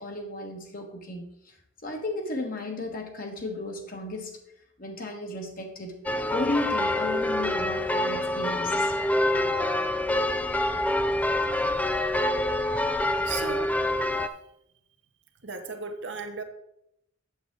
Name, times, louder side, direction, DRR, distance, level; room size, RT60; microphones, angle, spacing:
voice 1, 0.0-1.5 1.8-4.4 4.8-6.0 6.3-8.9, left 2 dB, 45° left, 2 dB, 1.5 m, -34 dB
sound 1, 6.1-14.3, left 1 dB, 10° left, 0.3 m, -26 dB
voice 2, 13.2-13.7 15.4-16.4, right 5 dB, 60° right, 5 dB, 1.0 m, -35 dB
8.0 x 7.5 x 3.9 m, 0.78 s
head